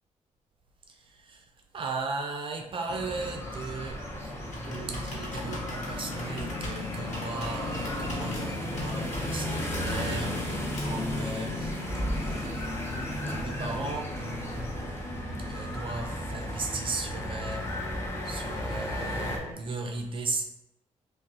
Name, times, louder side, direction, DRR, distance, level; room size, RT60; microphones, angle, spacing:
voice 1, 0.9-1.4 1.7-12.7 13.3-14.8 15.3-17.9 18.2-20.4, right 3 dB, 45° right, 0.4 m, -37 dB
sound 1, 2.9-19.4, left 1 dB, 20° left, 0.6 m, -34 dB
Computer keyboard, 3.9-11.2, left 1 dB, 65° left, 1.0 m, -42 dB
sound 2, 7.5-19.5, right 1 dB, 10° right, 1.3 m, -46 dB
5.2 x 2.0 x 2.6 m
wide cardioid pair, 155°, 13 cm